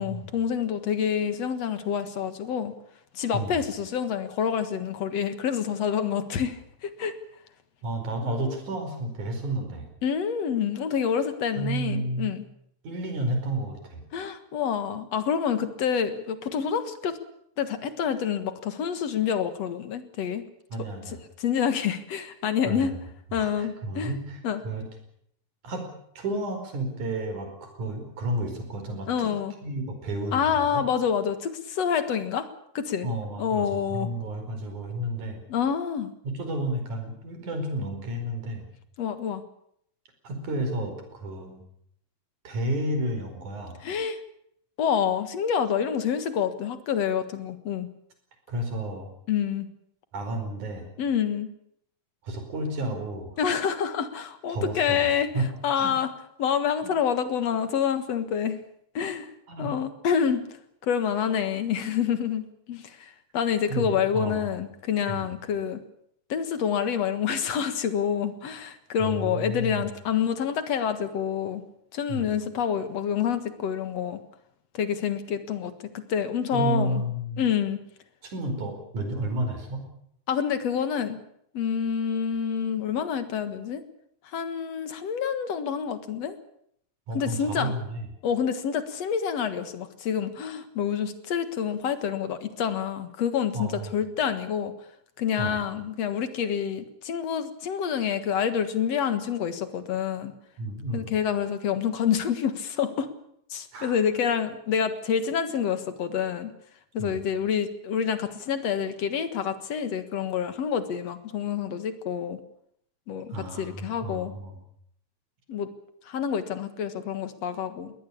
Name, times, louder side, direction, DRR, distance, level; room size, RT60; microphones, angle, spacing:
voice 1, 0.0-2.7 3.1-7.1 10.0-12.4 14.1-17.2 17.6-20.4 21.0-21.1 21.4-22.9 23.3-24.1 24.4-24.6 29.1-29.5 30.3-32.5 32.7-33.1 33.4-34.1 35.5-36.1 39.0-39.4 43.8-44.2 44.8-47.9 49.3-49.7 51.0-51.5 53.4-55.3 55.6-56.1 56.4-58.6 58.9-59.3 59.6-60.4 60.8-65.8 66.3-71.6 71.9-74.2 74.7-77.0 77.4-77.8 80.3-81.2 81.5-83.8 84.2-86.4 87.1-87.7 88.2-94.7 95.2-100.3 100.9-103.1 103.5-106.5 106.9-112.4 113.1-114.3 115.5-115.7 116.1-117.9, left 8 dB, 60° left, 11 dB, 2.6 m, -27 dB
voice 2, 7.8-9.9 11.6-12.3 12.8-14.1 20.7-21.2 22.6-23.0 23.3-24.8 25.6-25.9 26.2-29.4 29.6-30.9 33.0-35.4 36.2-38.7 40.2-41.6 42.4-43.8 48.5-49.1 50.1-50.9 52.2-53.4 54.5-55.5 55.8-56.0 56.8-56.9 59.5-59.7 63.7-64.5 65.1-65.3 69.0-69.8 72.1-72.3 76.5-77.5 78.2-79.9 87.1-88.1 93.5-93.9 95.4-95.5 100.6-101.1 103.7-104.0 107.0-107.2 113.3-114.6, right 1 dB, 85° right, 5 dB, 6.2 m, -31 dB
22.0 x 18.0 x 8.7 m, 0.71 s
omnidirectional pair, 3.4 m